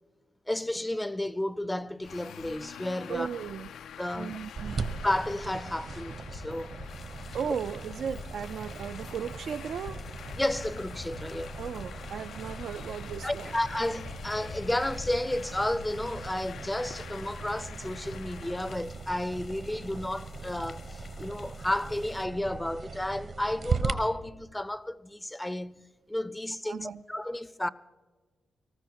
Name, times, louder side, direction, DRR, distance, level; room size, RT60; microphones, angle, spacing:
voice 1, 0.5-3.3 4.0-4.4 5.0-6.8 10.4-11.5 12.2-12.3 13.2-27.7, left 1 dB, 10° left, 0.4 m, -32 dB
Traffic noise roadway noise, 2.0-18.8, left 8 dB, 80° left, 0.3 m, -45 dB
voice 2, 3.1-3.7 4.2-4.8 7.3-10.0 11.6-13.5 26.6-27.0, right 7 dB, 70° right, 0.4 m, -36 dB
sound 1, 4.6-23.9, right 4 dB, 55° right, 0.9 m, -39 dB
sound 2, 6.9-22.3, left 5 dB, 55° left, 0.7 m, -51 dB
18.5 x 14.0 x 4.6 m
cardioid pair, 95°, 0 cm